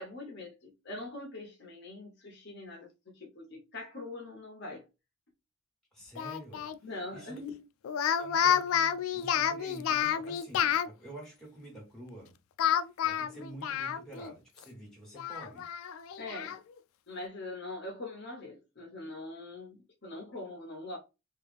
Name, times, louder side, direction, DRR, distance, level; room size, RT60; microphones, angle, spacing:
voice 1, 0.0-4.8 6.8-7.6 16.2-16.6 17.1-21.0, left 2 dB, 55° left, 0.9 m, -43 dB
voice 2, 5.9-6.7 7.1-7.4 8.2-12.3 13.0-15.7, right 1 dB, 5° left, 1.6 m, -48 dB
Speech, 6.2-6.8 7.8-10.9 12.6-14.3 14.6-14.7 15.2-16.6, left 9 dB, 80° left, 0.3 m, -30 dB
3.2 x 2.5 x 3.4 m
head